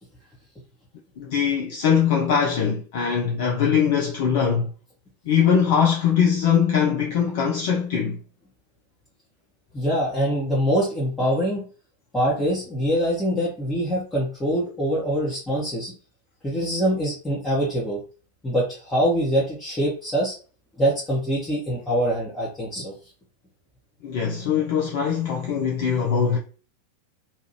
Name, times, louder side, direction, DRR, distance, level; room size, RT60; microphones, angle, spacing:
voice 1, 1.2-4.7 5.3-8.2 24.0-26.4, left 7 dB, 50° left, 0.5 m, -21 dB
voice 2, 9.7-11.7 12.1-15.9 16.4-18.0 18.4-20.3 20.8-22.9, equal, 10° left, 1.0 m, -24 dB
2.7 x 2.5 x 3.0 m
figure-of-eight pair, 90°, 0 cm